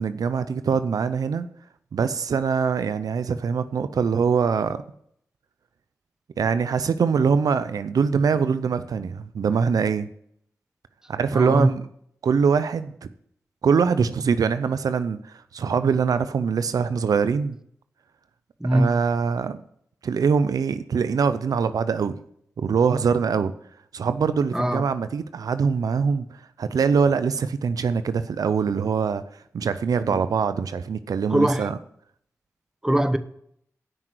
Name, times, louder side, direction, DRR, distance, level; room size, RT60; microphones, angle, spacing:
voice 1, 0.0-1.5 1.9-4.8 6.4-10.1 11.1-11.9 12.2-13.1 13.6-17.6 18.7-19.6 20.0-22.1 22.6-23.5 23.9-26.2 26.6-29.2 29.5-31.8, right 6 dB, 85° right, 0.5 m, -23 dB
voice 2, 11.3-11.7 18.6-19.0 24.5-24.8 30.1-30.2 31.3-31.7 32.8-33.2, right 1 dB, 10° right, 1.0 m, -21 dB
8.9 x 6.1 x 7.9 m
cardioid pair, 45°, 6 cm